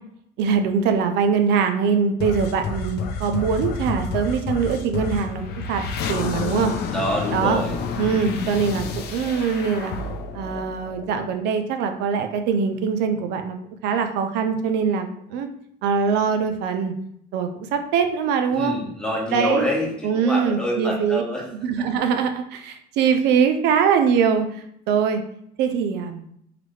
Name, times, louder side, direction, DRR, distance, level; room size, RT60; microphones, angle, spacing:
voice 1, 0.4-5.8 6.1-6.7 7.3-7.6 8.0-9.9 10.3-13.6 13.8-15.5 15.8-16.9 17.3-18.8 19.3-19.7 20.0-21.2 21.6-25.2 25.6-26.2, right 6 dB, 90° right, 6 dB, 0.5 m, -22 dB
sound 1, 2.2-11.5, left 4 dB, 75° left, 0.5 m, -29 dB
voice 2, 6.9-7.8 18.5-21.4, left 1 dB, 5° left, -3 dB, 1.3 m, -26 dB
3.8 x 3.1 x 3.2 m, 0.70 s
cardioid pair, 110°, 17 cm